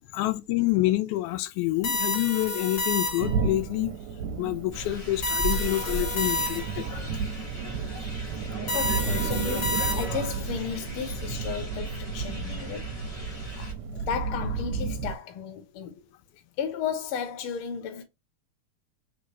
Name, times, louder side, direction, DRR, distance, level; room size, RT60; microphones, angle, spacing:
voice 1, 0.1-3.9 4.4-7.0 13.9-14.0, left 17 dB, 90° left, 2.0 m, -27 dB
sound 1, 1.8-3.5 5.2-6.9 8.7-10.3, left 1 dB, 35° left, 2.0 m, -30 dB
sound 2, 3.2-15.2, right 5 dB, 75° right, 1.7 m, -33 dB
sound 3, 4.7-13.7, right 1 dB, 20° left, 0.9 m, -36 dB
voice 2, 8.3-13.0 13.5-13.7 14.0-16.1 16.6-18.0, left 7 dB, 60° left, 1.5 m, -34 dB
4.4 x 3.6 x 3.0 m
omnidirectional pair, 3.4 m